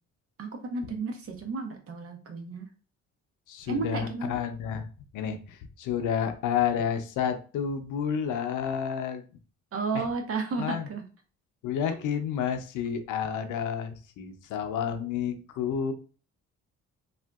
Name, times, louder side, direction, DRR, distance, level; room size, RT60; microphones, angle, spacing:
voice 1, 0.4-2.7 3.7-4.3 9.7-11.0, right 4 dB, 50° right, 4 dB, 0.8 m, -32 dB
voice 2, 3.5-4.9 5.1-9.2 9.9-10.0 10.6-10.9 11.6-15.9, left 8 dB, 85° left, 8 dB, 0.6 m, -30 dB
3.5 x 2.4 x 2.3 m, 0.37 s
cardioid pair, 90°, 30 cm